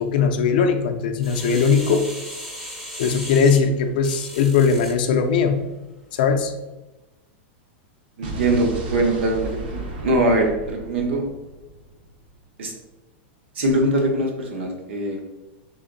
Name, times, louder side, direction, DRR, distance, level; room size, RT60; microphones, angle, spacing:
voice 1, 0.0-2.1 3.0-5.6 6.1-6.5, left 6 dB, 45° left, 6 dB, 0.4 m, -19 dB
sound 1, 1.2-5.0 5.5-5.6, equal, 5° right, 0.5 m, -36 dB
Explosion, 8.2-12.3, right 2 dB, 50° right, 0.6 m, -34 dB
voice 2, 8.2-11.2 12.6-12.7 13.6-15.2, right 1 dB, 70° right, 2 dB, 0.9 m, -22 dB
3.5 x 2.6 x 3.8 m, 1.1 s
supercardioid pair, 180°, 6 cm